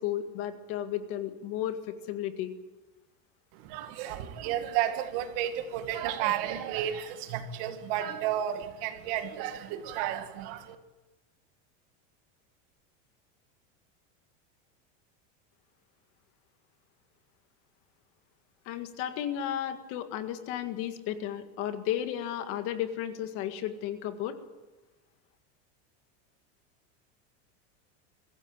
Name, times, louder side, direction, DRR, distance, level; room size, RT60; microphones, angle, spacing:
voice 1, 0.0-2.5 18.7-24.4, left 11 dB, 40° left, 8 dB, 1.9 m, -33 dB
voice 2, 3.5-10.8, right 11 dB, 50° right, 8 dB, 2.2 m, -32 dB
24.5 x 15.5 x 8.9 m, 1.1 s
supercardioid pair, 170°, 34 cm